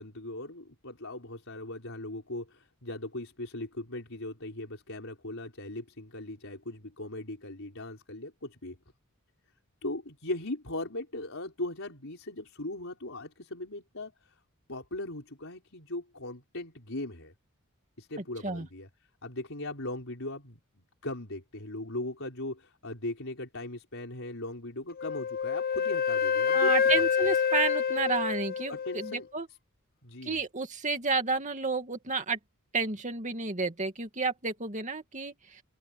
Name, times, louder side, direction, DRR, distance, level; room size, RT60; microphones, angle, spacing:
voice 1, 0.0-8.8 9.8-14.4 14.7-17.3 18.0-18.9 19.2-27.3 28.7-29.3 30.0-30.4, left 1 dB, 65° left, 5.5 m, -39 dB
Wind instrument woodwind instrument, 25.0-29.2, left 6 dB, 45° left, 0.9 m, -27 dB
voice 2, 26.5-29.5 30.2-32.4 32.7-35.6, right 4 dB, 35° right, 2.3 m, -31 dB
open air
head